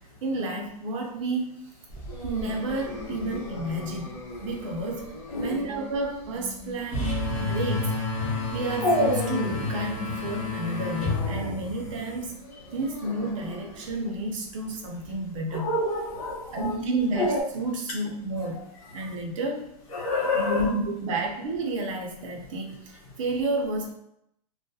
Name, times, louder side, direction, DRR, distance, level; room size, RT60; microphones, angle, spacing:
voice 1, 0.2-1.6 2.2-4.1 4.4-5.0 5.4-7.1 7.4-12.4 12.7-15.7 16.5-18.7 18.9-19.7 20.3-23.9, right 2 dB, 55° right, 1 dB, 0.6 m, -31 dB
Dog, 1.9-17.4, equal, 10° left, 0.4 m, -34 dB
sound 1, 6.9-12.3, left 3 dB, 30° left, 0.9 m, -30 dB
voice 2, 15.5-16.7 19.9-20.7, left 2 dB, 65° left, -3 dB, 0.9 m, -28 dB
2.3 x 2.1 x 2.6 m, 0.76 s
supercardioid pair, 155°, 20 cm